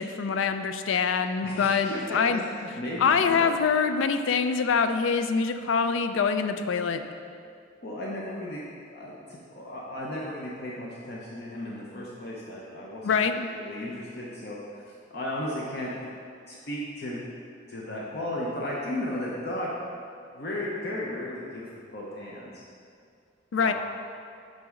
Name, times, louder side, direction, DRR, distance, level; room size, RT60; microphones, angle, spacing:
voice 1, 0.0-2.4 3.0-7.0 13.0-13.5 23.5-23.7, left 5 dB, 85° left, 9 dB, 0.4 m, -25 dB
voice 2, 1.4-3.5 7.8-8.6 8.9-13.1 13.5-15.9 16.5-17.2 17.7-19.7 20.3-21.6 21.9-22.6 23.6-23.7, left 1 dB, 55° left, -5 dB, 0.7 m, -35 dB
7.5 x 4.1 x 3.7 m, 2.3 s
head